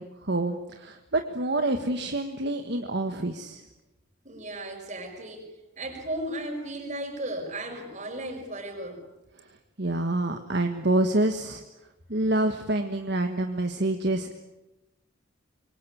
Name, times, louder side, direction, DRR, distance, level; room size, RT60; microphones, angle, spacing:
voice 1, 0.0-3.6 9.8-11.6 12.1-14.3, right 2 dB, 55° right, 6 dB, 1.5 m, -27 dB
voice 2, 4.2-5.4 5.8-9.0, right 1 dB, 35° right, 4 dB, 5.7 m, -35 dB
26.0 x 23.5 x 8.5 m, 1.0 s
head